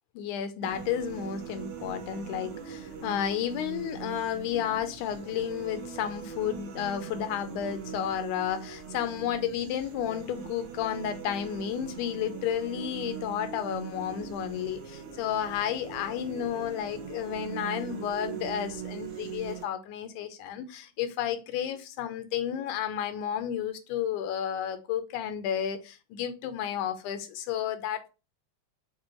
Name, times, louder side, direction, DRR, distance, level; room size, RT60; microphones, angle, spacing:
voice 1, 0.2-28.1, left 9 dB, 90° left, 2.1 m, -32 dB
sound 1, 0.6-19.6, right 6 dB, 65° right, 1.5 m, -41 dB
6.0 x 2.6 x 2.9 m
omnidirectional pair, 3.5 m